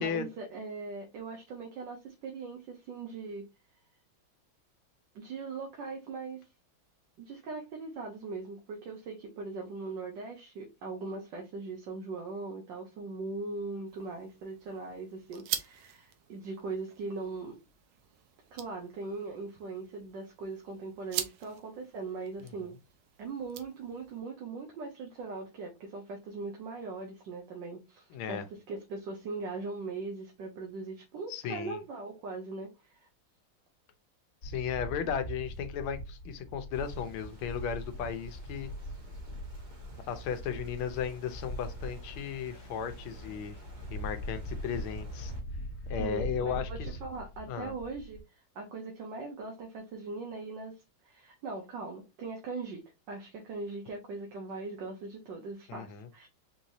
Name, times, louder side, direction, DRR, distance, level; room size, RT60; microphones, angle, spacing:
voice 1, 0.0-3.5 5.1-6.5 7.2-17.6 18.5-22.7 23.2-33.1 35.0-35.1 46.0-52.8 53.1-56.3, right 3 dB, 65° right, 1.4 m, -40 dB
sound 1, 13.9-24.2, right 10 dB, 85° right, 1.5 m, -44 dB
voice 2, 28.1-28.4 31.3-31.8 34.4-38.7 40.1-43.6 43.9-45.3 45.9-46.7 47.5-47.7 55.7-56.1, left 7 dB, 90° left, 1.6 m, -35 dB
sound 2, 34.4-48.2, equal, 45° left, 1.5 m, -41 dB
sound 3, 36.7-45.4, left 1 dB, 30° right, 0.8 m, -52 dB
4.7 x 2.9 x 2.6 m
omnidirectional pair, 2.3 m